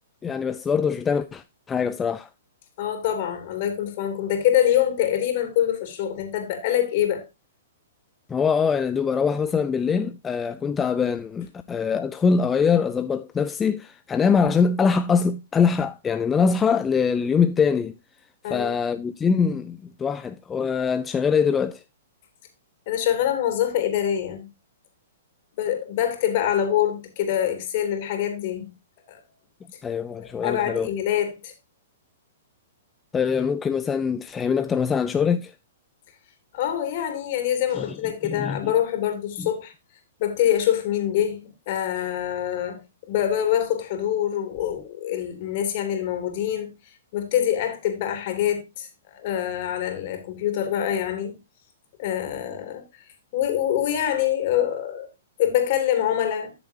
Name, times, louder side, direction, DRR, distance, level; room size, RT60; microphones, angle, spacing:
voice 1, 0.2-2.3 8.3-17.9 18.5-21.8 29.8-30.9 33.1-35.5 37.7-38.0 38.2-38.7 39.4-39.5, left 6 dB, 15° left, 0.4 m, -23 dB
voice 2, 2.8-7.2 18.4-18.8 22.9-24.5 25.6-28.7 29.1-29.2 29.7-29.8 30.2-31.5 36.5-39.7 40.2-51.4 52.0-53.0 53.3-55.1 55.4-56.5, left 10 dB, 50° left, 3.1 m, -25 dB
13.0 x 6.9 x 2.8 m
hypercardioid pair, 135°, 0 cm